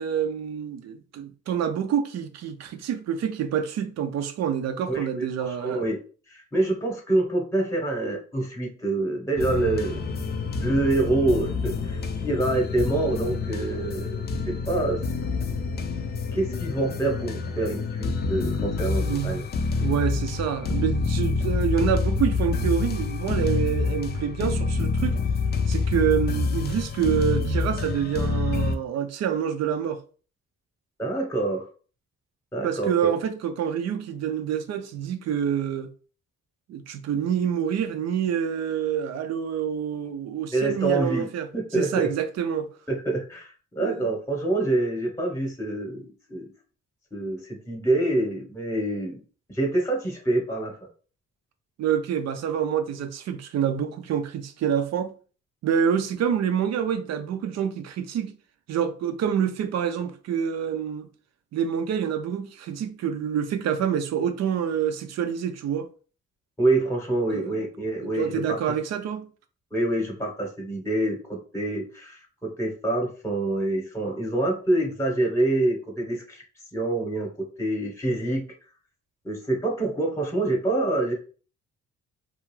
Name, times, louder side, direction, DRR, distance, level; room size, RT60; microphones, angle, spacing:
voice 1, 0.0-5.8 19.0-19.4 19.8-25.2 25.7-30.0 32.6-35.9 36.7-41.5 41.7-42.7 43.8-44.1 51.8-55.1 55.6-58.4 58.7-61.1 61.5-65.9 67.3-67.6 68.0-69.3, right 8 dB, 60° right, 0.5 m, -27 dB
voice 2, 4.9-6.0 6.3-10.0 10.6-15.0 16.3-19.4 31.0-31.7 32.5-33.1 40.5-41.3 41.5-42.1 42.9-46.5 47.1-47.4 47.7-49.2 49.5-50.7 66.6-68.8 69.7-76.4 76.7-78.5 79.2-81.1, right 2 dB, 10° left, 0.9 m, -26 dB
sound 1, 9.4-28.7, left 4 dB, 35° left, 0.4 m, -27 dB
2.4 x 2.3 x 3.1 m
cardioid pair, 90°, 30 cm